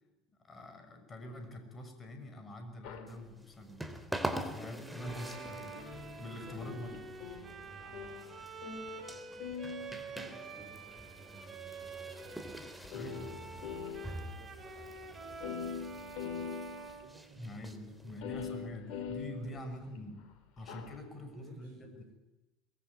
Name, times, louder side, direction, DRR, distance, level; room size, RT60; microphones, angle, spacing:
voice 1, 0.4-3.9 4.4-5.8 6.2-7.0 12.9-13.4 17.3-22.0, left 1 dB, 25° left, 6 dB, 6.2 m, -45 dB
sound 1, 2.8-3.1 5.0-9.1 9.4-10.9 11.8-11.9 12.5-12.6 12.8-14.4 14.7-14.8 15.0-15.1 15.3-17.0 18.2-20.0 20.6-21.0, left 7 dB, 55° left, 3.4 m, -43 dB
sound 2, 3.1-18.2, right 1 dB, 5° right, 3.1 m, -45 dB
Bowed string instrument, 4.9-12.8 13.1-17.9, right 5 dB, 30° right, 3.7 m, -48 dB
voice 2, 6.4-6.9 7.6-11.5 11.9-13.7 14.0-16.6 17.0-18.8 19.3-20.0 21.0-22.0, right 4 dB, 55° right, 2 dB, 4.8 m, -59 dB
22.5 x 21.0 x 9.3 m, 1.0 s
figure-of-eight pair, 65°, 0 cm